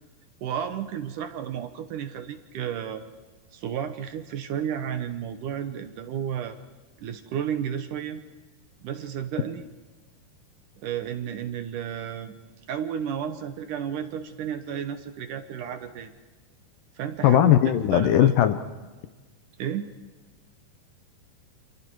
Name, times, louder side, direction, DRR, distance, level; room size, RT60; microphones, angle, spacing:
voice 1, 0.4-3.0 3.5-6.6 7.0-8.2 8.8-9.6 10.8-12.3 12.7-16.2 17.0-17.5 17.9-18.3 19.6-19.9, right 9 dB, 70° right, 9 dB, 2.3 m, -32 dB
voice 2, 17.2-18.6, left 11 dB, 75° left, 11 dB, 2.2 m, -18 dB
29.0 x 27.0 x 4.7 m, 1.3 s
omnidirectional pair, 4.4 m